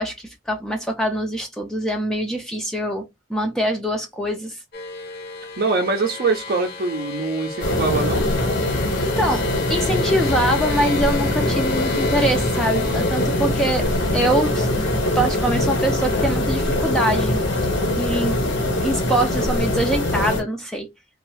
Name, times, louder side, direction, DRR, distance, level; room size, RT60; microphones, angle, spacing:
voice 1, 0.0-3.0 3.3-4.6 8.7-8.8 9.1-9.4 9.7-13.8 14.1-14.7 15.1-17.4 18.0-18.4 18.8-20.9, right 1 dB, 5° left, 0.4 m, -24 dB
sound 1, 4.7-16.3, left 3 dB, 55° left, 0.7 m, -34 dB
voice 2, 5.6-8.3, right 3 dB, 55° right, 0.5 m, -23 dB
sound 2, 7.6-20.4, left 1 dB, 75° left, 1.2 m, -22 dB
2.6 x 2.3 x 3.1 m
head